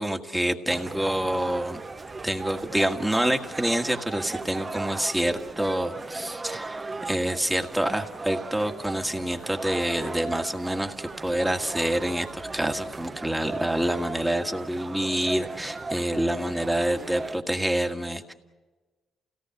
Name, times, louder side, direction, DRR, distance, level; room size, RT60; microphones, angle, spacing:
voice 1, 0.0-1.8 2.2-18.3, right 1 dB, 5° right, 5 dB, 1.8 m, -27 dB
sound 1, 0.7-17.4, right 3 dB, 30° right, 1.1 m, -37 dB
28.5 x 17.5 x 7.9 m, 1.3 s
cardioid pair, 90°, 0 cm